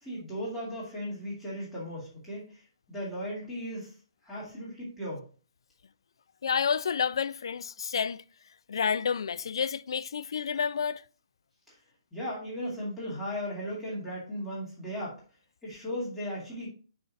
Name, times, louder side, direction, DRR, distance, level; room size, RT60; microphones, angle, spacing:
voice 1, 0.0-2.6 2.9-3.9 4.2-5.3 11.7-11.8 12.1-15.2 15.6-16.7, equal, ahead, 2.1 m, -36 dB
voice 2, 6.4-8.2 8.7-11.0, left 6 dB, 65° left, 0.4 m, -29 dB
5.6 x 4.9 x 4.0 m
hypercardioid pair, 175°, 3 cm